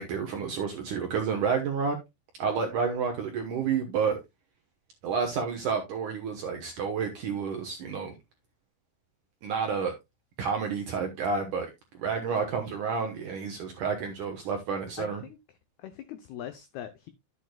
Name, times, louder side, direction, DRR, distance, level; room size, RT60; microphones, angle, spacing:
voice 1, 0.0-2.0 2.4-4.2 5.0-8.1 9.4-9.9 10.4-11.7 12.0-15.2, right 6 dB, 75° right, 1.8 m, -30 dB
voice 2, 15.0-15.4 15.8-17.1, left 11 dB, 90° left, 2.2 m, -41 dB
11.0 x 8.5 x 2.3 m
omnidirectional pair, 5.5 m